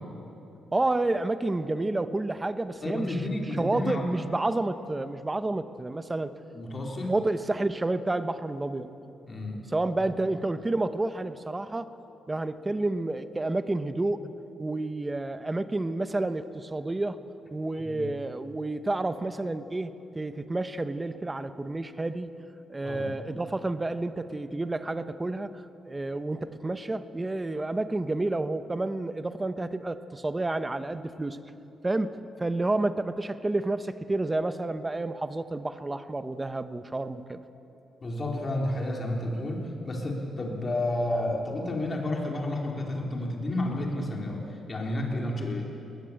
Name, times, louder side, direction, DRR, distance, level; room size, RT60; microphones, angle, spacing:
voice 1, 0.7-3.2 3.6-6.3 7.1-8.9 9.7-11.9 12.3-14.3 14.6-17.2 17.5-22.3 22.7-31.4 31.8-37.4, right 2 dB, 15° right, 11 dB, 0.9 m, -30 dB
voice 2, 2.8-4.1 6.5-7.1 9.3-9.6 10.0-10.1 17.8-18.0 22.8-23.1 38.0-45.6, left 1 dB, 30° left, 0 dB, 4.0 m, -31 dB
21.0 x 19.5 x 8.8 m, 3.0 s
cardioid pair, 125°, 0 cm